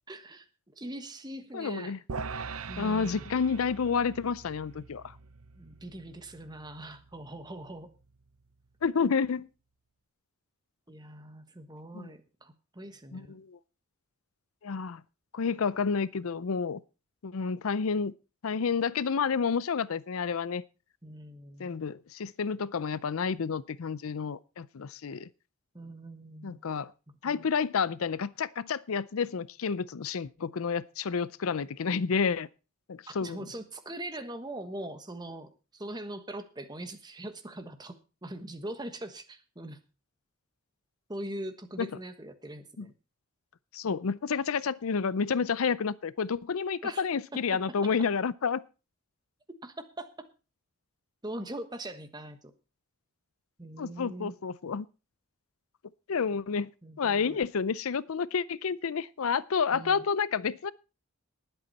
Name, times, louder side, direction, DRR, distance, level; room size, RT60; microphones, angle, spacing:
voice 1, 0.1-1.9 2.7-3.3 5.6-7.9 10.9-13.4 21.0-21.8 25.7-26.6 27.2-27.5 33.1-39.8 41.1-42.9 46.8-47.1 47.3-47.4 49.6-50.1 51.2-52.5 53.6-54.3 56.8-57.4 59.7-60.0, right 1 dB, 20° right, 1.3 m, -42 dB
voice 2, 1.5-2.0 2.8-5.0 8.8-9.5 11.9-12.1 13.1-13.6 14.6-15.0 15.3-16.8 17.2-18.1 18.4-20.6 21.6-25.3 26.4-26.9 27.2-32.5 32.9-33.4 41.8-41.9 42.8-42.9 43.7-48.6 53.8-54.9 56.1-56.7 57.0-60.7, left 5 dB, 75° left, 0.5 m, -30 dB
sound 1, 2.1-8.5, right 4 dB, 80° right, 0.8 m, -43 dB
19.5 x 8.1 x 4.1 m
head